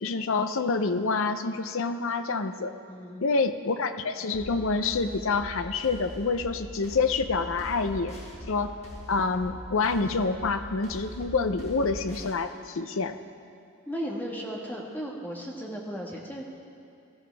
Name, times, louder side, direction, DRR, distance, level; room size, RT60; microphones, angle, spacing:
voice 1, 0.0-2.7 3.2-8.2 8.5-8.8 9.1-13.2, left 4 dB, 60° left, 9 dB, 0.6 m, -27 dB
voice 2, 2.9-3.3 13.9-16.4, equal, 10° left, -2 dB, 1.5 m, -35 dB
sound 1, 4.3-12.3, left 1 dB, 30° left, 1.7 m, -42 dB
18.0 x 13.5 x 3.4 m, 2.4 s
head